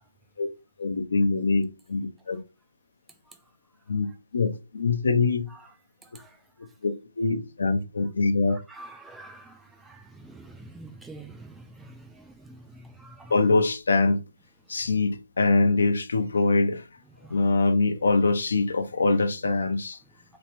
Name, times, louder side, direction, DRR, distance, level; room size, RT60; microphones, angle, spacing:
voice 1, 0.8-2.4 3.9-4.1 4.3-5.5 6.8-8.6 13.3-14.2 14.7-16.9 17.3-20.0, left 3 dB, 70° left, 0.6 m, -23 dB
voice 2, 8.5-13.3 17.2-17.3, right 2 dB, 5° right, 0.3 m, -46 dB
3.2 x 3.0 x 3.0 m
hypercardioid pair, 150°, 0 cm